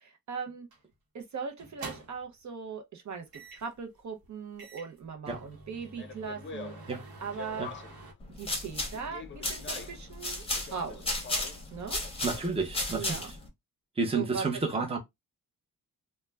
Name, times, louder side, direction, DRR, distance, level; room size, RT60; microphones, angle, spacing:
voice 1, 0.1-0.7 1.1-6.7 7.2-7.7 8.4-11.2 11.7-12.0 12.9-13.3 14.1-14.5 14.7-14.8, right 6 dB, 55° right, 0.6 m, -39 dB
sound 1, 0.7-0.9 1.6-2.3 3.3-3.8 4.2-4.3 4.6-8.1, right 3 dB, 80° right, 0.9 m, -47 dB
Speech, 5.9-8.1 8.9-10.1 10.5-11.7 12.0-12.7, left 5 dB, 35° left, 0.5 m, -45 dB
sound 2, 8.2-13.5, left 2 dB, 15° left, 0.8 m, -34 dB
voice 2, 12.2-13.4 14.0-15.0, right 4 dB, 15° right, 0.7 m, -31 dB
2.3 x 2.2 x 3.2 m
wide cardioid pair, 150°, 36 cm